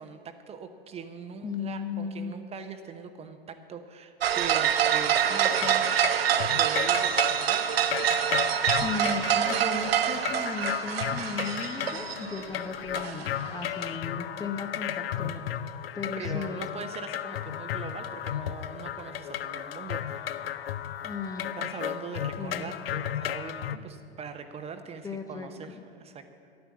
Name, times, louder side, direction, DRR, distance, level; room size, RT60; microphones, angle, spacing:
voice 1, 0.0-7.8 16.2-20.6 21.6-26.2, right 6 dB, 20° right, 8 dB, 0.8 m, -41 dB
voice 2, 1.4-2.4 8.8-15.4 15.9-16.6 21.0-21.5 22.4-22.7 25.0-25.5, left 4 dB, 10° left, 5 dB, 0.7 m, -36 dB
sound 1, 4.2-12.6 12.9-13.9, right 9 dB, 75° right, 0.8 m, -26 dB
sound 2, 5.1-23.8, left 10 dB, 70° left, 0.6 m, -34 dB
11.5 x 9.5 x 7.2 m, 2.5 s
hypercardioid pair, 105°, 30 cm